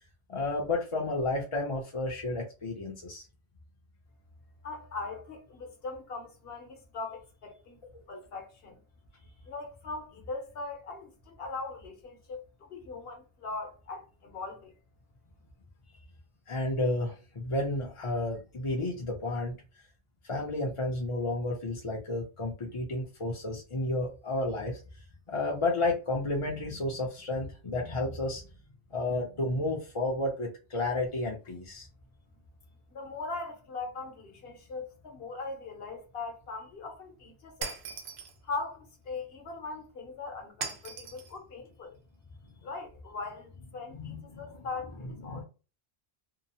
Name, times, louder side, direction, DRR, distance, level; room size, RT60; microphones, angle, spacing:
voice 1, 0.3-3.2 8.1-8.2 16.5-19.6 20.2-24.8 25.3-28.5 28.9-31.9 43.9-44.7 45.2-45.4, left 2 dB, 40° left, 0.5 m, -32 dB
voice 2, 4.6-7.8 8.1-8.8 9.5-14.7 32.9-37.8 38.4-42.0 42.6-45.4, left 3 dB, 65° left, 1.1 m, -40 dB
Shatter, 37.6-38.4 40.6-41.3, right 5 dB, 75° right, 0.9 m, -38 dB
2.8 x 2.0 x 2.7 m
omnidirectional pair, 1.1 m